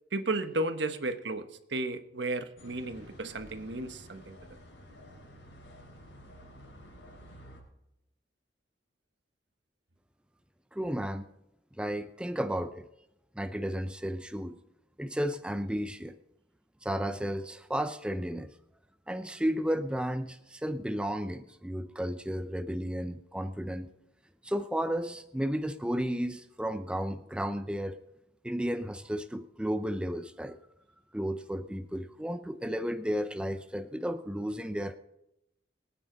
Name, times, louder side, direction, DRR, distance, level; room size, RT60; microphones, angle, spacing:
voice 1, 0.1-1.4 1.7-4.4, right 2 dB, 75° right, 9 dB, 1.2 m, -33 dB
sound 1, 2.6-7.6, equal, 80° left, 5.1 m, -51 dB
voice 2, 10.7-11.3 11.8-12.9 13.4-14.6 15.0-16.2 16.8-18.5 19.1-23.9 24.4-28.0 28.4-30.6 31.1-34.9, equal, 5° right, 10 dB, 0.5 m, -33 dB
23.0 x 9.9 x 3.9 m, 0.86 s
head